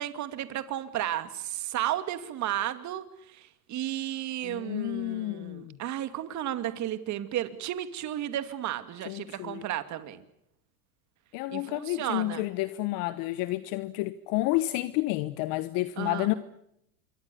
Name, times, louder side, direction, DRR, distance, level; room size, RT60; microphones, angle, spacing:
voice 1, 0.0-10.2 11.5-12.5 16.0-16.3, right 12 dB, 40° right, 10 dB, 2.5 m, -33 dB
voice 2, 4.4-5.8 9.1-9.6 11.3-16.3, left 18 dB, 45° left, 14 dB, 1.2 m, -30 dB
27.0 x 24.5 x 7.0 m, 0.78 s
hypercardioid pair, 110°, 46 cm